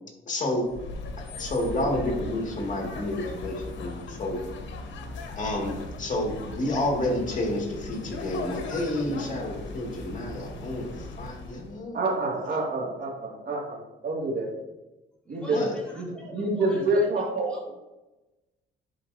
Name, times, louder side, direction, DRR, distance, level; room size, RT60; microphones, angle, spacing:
voice 1, 0.3-0.7 1.2-4.4 5.4-12.0 15.5-15.7, left 1 dB, 40° left, 0 dB, 2.1 m, -30 dB
sound 1, 0.6-11.8, left 3 dB, 70° left, 1.1 m, -38 dB
voice 2, 11.9-14.5 15.3-15.6 16.0-16.1 16.3-17.5, right 2 dB, 50° right, -2 dB, 2.2 m, -27 dB
voice 3, 15.2-17.7, equal, 5° left, -4 dB, 2.4 m, -43 dB
11.0 x 4.4 x 2.7 m, 1.0 s
cardioid pair, 90°, 20 cm